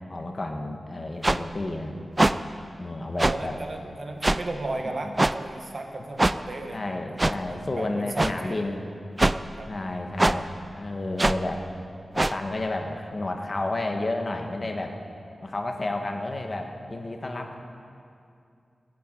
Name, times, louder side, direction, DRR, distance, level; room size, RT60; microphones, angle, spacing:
voice 1, 0.1-2.0 2.8-3.6 5.0-5.1 6.7-8.8 9.7-10.5 10.8-11.6 12.1-15.0 15.4-17.6, left 2 dB, 35° left, 3 dB, 1.5 m, -31 dB
sound 1, 1.2-1.4 2.2-2.3 3.2-3.4 4.2-4.4 5.2-5.3 6.2-6.3 7.2-7.4 8.2-8.3 9.2-9.4 10.2-10.4 11.2-11.4 12.2-12.3, right 2 dB, 20° right, 0.4 m, -21 dB
voice 2, 3.2-6.8 7.1-8.6 9.6-9.7, right 2 dB, 50° right, 3 dB, 1.8 m, -35 dB
16.5 x 9.4 x 9.3 m, 2.5 s
wide cardioid pair, 125°, 0 cm